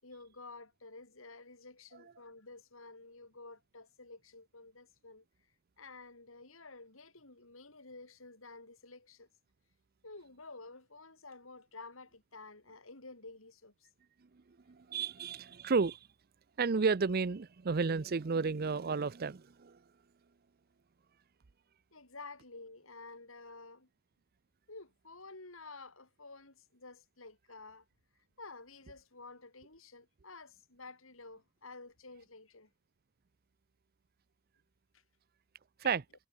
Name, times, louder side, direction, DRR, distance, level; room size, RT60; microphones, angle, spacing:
voice 1, 0.0-5.2 5.8-9.3 10.0-13.7 21.9-23.9 24.7-27.9 28.4-32.7 34.9-35.0, left 3 dB, 80° left, 5.5 m, -51 dB
voice 2, 14.3-16.0 16.6-19.8 35.8-36.0, right 4 dB, 50° right, 0.6 m, -32 dB
head